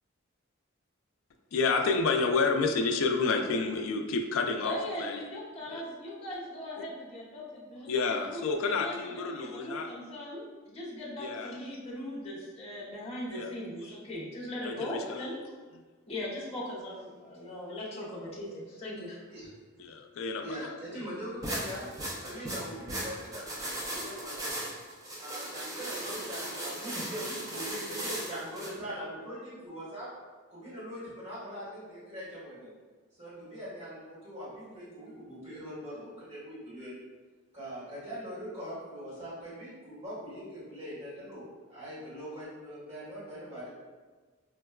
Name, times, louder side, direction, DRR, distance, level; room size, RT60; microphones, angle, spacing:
voice 1, 1.5-5.2 5.7-5.8 7.9-9.9 11.2-11.6 13.3-13.5 14.6-15.3 19.8-21.1, left 4 dB, 75° left, 5 dB, 0.3 m, -30 dB
voice 2, 4.6-15.4 16.1-19.2, left 1 dB, 30° left, -6 dB, 0.7 m, -39 dB
voice 3, 20.4-21.9 22.2-24.5 25.2-30.1 30.5-32.7 33.1-36.9 37.5-41.4 41.7-43.7, equal, 35° right, -11 dB, 1.5 m, -41 dB
sound 1, 21.4-28.7, right 1 dB, 15° right, 0.4 m, -37 dB
4.4 x 2.2 x 2.2 m, 1.4 s
head